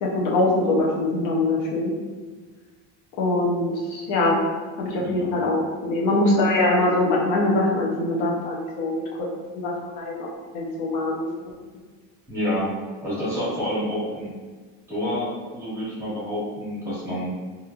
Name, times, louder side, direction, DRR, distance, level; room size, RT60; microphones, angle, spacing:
voice 1, 0.0-1.9 3.2-4.4 4.8-9.0 9.5-10.3 10.5-11.5, left 2 dB, 70° left, -4 dB, 0.7 m, -23 dB
voice 2, 5.0-5.5 12.3-12.7 13.0-14.3 14.9-17.3, equal, 10° right, -11 dB, 1.3 m, -28 dB
2.9 x 2.5 x 2.4 m, 1.4 s
cardioid pair, 140°, 34 cm